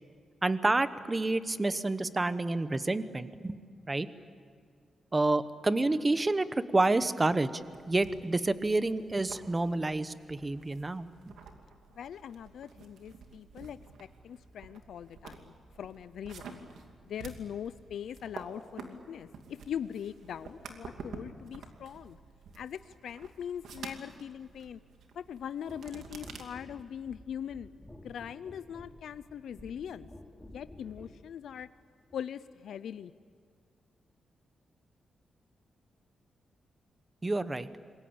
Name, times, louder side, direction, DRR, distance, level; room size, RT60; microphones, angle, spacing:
voice 1, 0.4-3.6 3.9-4.1 5.1-7.6 7.9-11.1 37.2-37.7, right 2 dB, 20° right, 13 dB, 1.0 m, -29 dB
sound 1, 7.6-26.4, right 4 dB, 90° right, 2.7 m, -50 dB
voice 2, 11.9-16.6 17.1-22.2 22.5-24.8 25.1-27.7 28.0-30.1 30.5-31.7 32.1-33.1, left 9 dB, 80° left, 14 dB, 0.6 m, -41 dB
sound 2, 25.7-31.2 32.1-32.3, left 1 dB, 5° left, 3.0 m, -52 dB
27.5 x 22.0 x 8.8 m, 2.1 s
wide cardioid pair, 130°, 0 cm